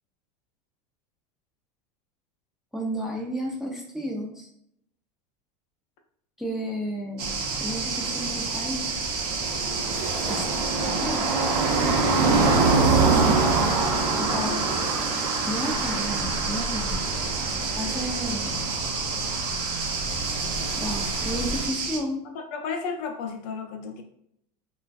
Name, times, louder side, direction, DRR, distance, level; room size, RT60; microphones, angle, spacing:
voice 1, 2.7-4.5 6.4-7.3 7.6-9.0 10.3-11.6 12.8-13.5 14.2-14.7 15.5-17.3 17.7-18.6 20.8-22.2, equal, ahead, -1 dB, 0.4 m, -32 dB
sound 1, 7.2-22.0, right 4 dB, 75° right, 0.6 m, -25 dB
sound 2, 7.9-21.7, right 2 dB, 35° right, 1.0 m, -38 dB
voice 2, 14.3-14.8 22.2-24.0, left 5 dB, 55° left, 4 dB, 0.5 m, -34 dB
2.4 x 2.3 x 2.3 m, 0.70 s
supercardioid pair, 120°, 20 cm